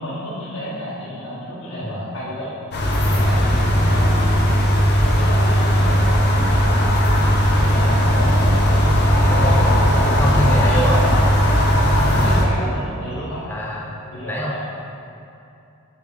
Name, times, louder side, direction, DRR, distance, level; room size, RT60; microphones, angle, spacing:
voice 1, 0.0-2.6 3.0-4.5 5.0-7.0 7.6-8.7 9.3-9.8 10.7-11.3 11.9-13.4 14.1-14.6, equal, 80° left, -10 dB, 1.4 m, -31 dB
sound 1, 2.7-12.4, equal, 50° left, 0.9 m, -17 dB
voice 2, 9.3-9.6 10.2-11.0 13.5-13.9 14.2-14.6, equal, 10° left, -3 dB, 0.5 m, -25 dB
7.3 x 3.8 x 4.7 m, 2.6 s
head